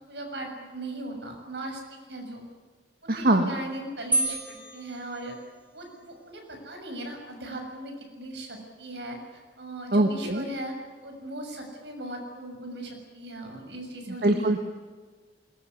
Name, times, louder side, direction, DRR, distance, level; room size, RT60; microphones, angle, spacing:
voice 1, 0.1-2.4 3.0-5.4 5.7-10.8 11.0-14.6, right 1 dB, 75° right, 2 dB, 6.9 m, -38 dB
voice 2, 3.1-3.5 9.9-10.4 14.2-14.6, right 1 dB, 55° right, 6 dB, 1.6 m, -22 dB
sound 1, 4.1-5.9, right 2 dB, 10° right, 4.0 m, -30 dB
21.5 x 20.5 x 9.8 m, 1.4 s
head